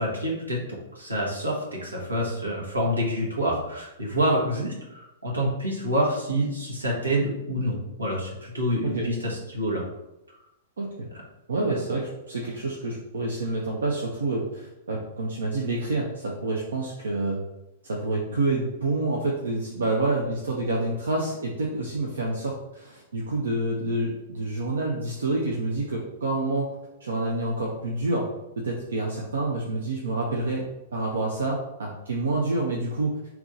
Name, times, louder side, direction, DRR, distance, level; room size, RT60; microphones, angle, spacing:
voice 1, 0.0-9.8, equal, 90° right, -3 dB, 1.2 m, -27 dB
voice 2, 10.8-11.1 11.5-17.4 17.9-26.7 27.0-28.3 28.6-33.2, right 2 dB, 70° right, -2 dB, 0.7 m, -28 dB
3.5 x 3.0 x 3.8 m, 0.93 s
figure-of-eight pair, 105°, 0 cm